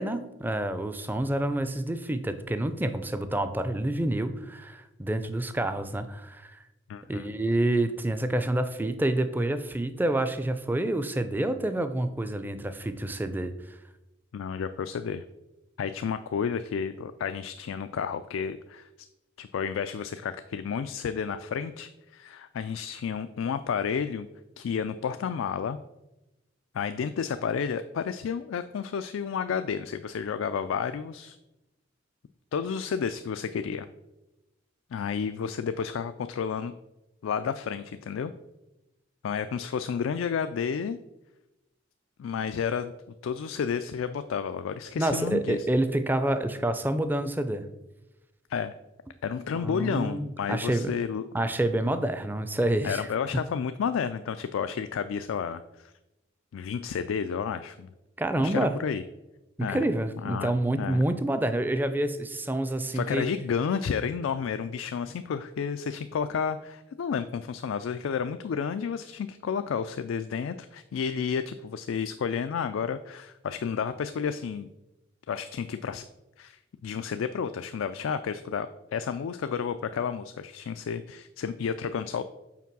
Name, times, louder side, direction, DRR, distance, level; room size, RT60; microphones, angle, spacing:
voice 1, 0.0-6.6 7.1-13.8 45.0-47.6 49.5-50.9 51.3-53.1 58.2-58.8 59.6-63.3, right 1 dB, 10° right, 10 dB, 0.4 m, -28 dB
voice 2, 6.9-7.3 14.3-15.2 15.8-18.9 19.4-24.3 24.6-25.8 26.7-31.4 32.5-33.9 34.9-36.7 37.2-38.3 39.2-41.0 42.2-42.9 43.2-45.7 48.5-48.7 49.2-51.2 52.8-55.9 56.5-57.9 58.4-59.0 59.6-59.8 60.2-60.5 60.8-61.0 62.9-74.7 75.3-76.0 76.4-82.2, left 6 dB, 90° left, 10 dB, 0.3 m, -31 dB
5.8 x 4.6 x 6.0 m, 0.98 s
head